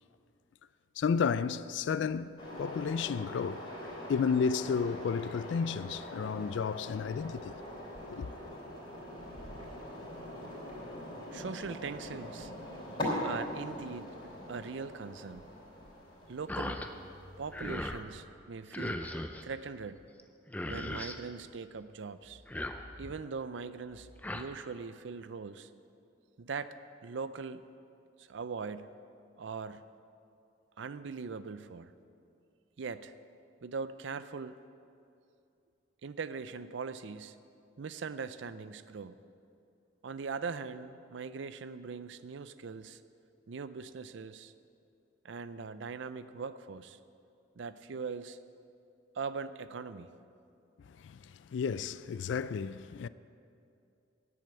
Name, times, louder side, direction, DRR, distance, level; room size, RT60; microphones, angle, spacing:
voice 1, 1.0-3.6 4.1-7.5 8.1-8.3 51.0-51.2 51.5-53.1, left 6 dB, 70° left, 0.3 m, -32 dB
sound 1, 2.4-18.0, left 1 dB, 25° left, 3.7 m, -42 dB
voice 2, 11.3-12.5 13.2-14.1 14.5-15.5 16.3-16.8 17.4-19.0 19.4-20.0 20.7-22.4 23.0-25.7 26.4-26.7 27.0-27.6 28.2-28.9 29.4-29.8 30.8-31.9 32.8-33.1 33.6-34.6 36.0-37.4 37.8-39.2 40.0-43.0 43.5-44.5 45.2-47.0 47.6-48.4 49.1-50.1, right 5 dB, 70° right, 0.5 m, -41 dB
sound 2, 16.5-16.9 17.3-18.0 18.7-19.4 20.2-20.3 20.5-21.2 22.3-23.2 23.9-24.4, left 1 dB, 10° left, 0.4 m, -38 dB
10.5 x 8.5 x 7.8 m
head